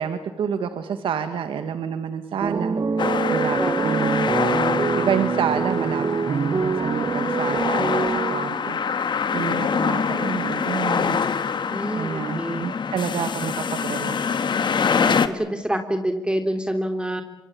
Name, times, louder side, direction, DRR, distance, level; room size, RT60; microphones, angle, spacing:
voice 1, 0.0-4.3 5.0-11.2 12.0-14.2, right 7 dB, 85° right, 8 dB, 1.7 m, -29 dB
sound 1, 2.4-8.8, right 4 dB, 45° right, 1.0 m, -25 dB
sound 2, 3.0-15.3, left 6 dB, 65° left, 1.9 m, -25 dB
voice 2, 3.5-4.4 11.7-12.7 14.9-17.2, right 1 dB, 10° right, 6 dB, 3.2 m, -28 dB
26.5 x 23.0 x 8.7 m, 0.96 s
cardioid pair, 60°, 9 cm